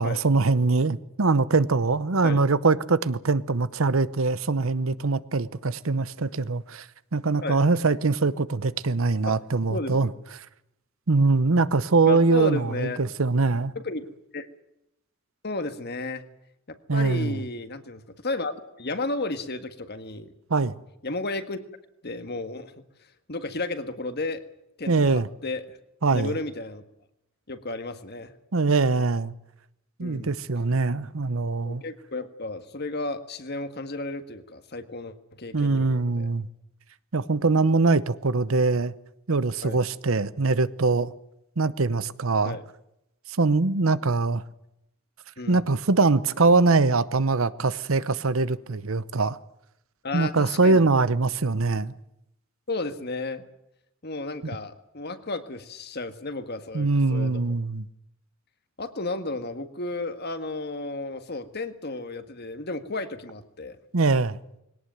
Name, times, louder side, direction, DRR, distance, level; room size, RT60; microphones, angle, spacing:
voice 1, 0.0-6.9 7.1-10.1 11.1-13.7 16.9-17.4 20.5-20.8 24.9-25.3 26.0-26.3 28.5-29.3 30.0-31.8 35.5-36.5 37.1-38.9 39.3-41.1 41.6-42.6 43.3-44.4 45.5-49.4 50.1-51.9 56.7-57.9 63.9-64.4, right 3 dB, 70° right, 0.9 m, -23 dB
voice 2, 9.7-10.1 12.0-13.0 13.7-14.5 15.4-16.2 16.7-20.3 21.0-21.6 22.0-22.7 23.3-24.4 24.8-25.8 26.1-26.8 27.5-28.3 30.0-30.3 31.6-36.3 37.4-37.5 39.6-39.8 42.4-42.6 45.4-45.6 50.0-50.9 52.7-53.4 54.0-57.4 58.8-63.8, left 2 dB, 50° left, 1.7 m, -33 dB
21.0 x 18.0 x 9.3 m
head